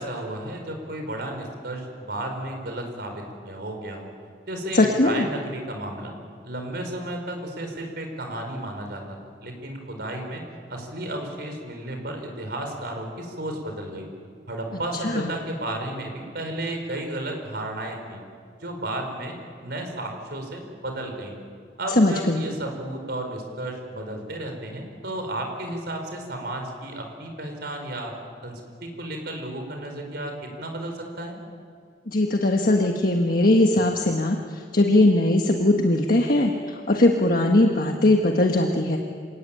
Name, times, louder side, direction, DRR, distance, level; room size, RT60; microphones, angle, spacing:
voice 1, 0.0-4.1 4.5-6.1 6.4-9.2 9.4-10.4 10.7-14.1 14.5-18.2 18.6-19.4 19.6-21.4 21.8-28.1 28.4-31.4, right 1 dB, 60° right, 4 dB, 5.1 m, -33 dB
voice 2, 4.7-5.3 15.0-15.3 22.0-22.4 32.1-39.0, left 1 dB, 50° left, 2 dB, 1.5 m, -20 dB
27.5 x 18.5 x 8.9 m, 2.1 s
head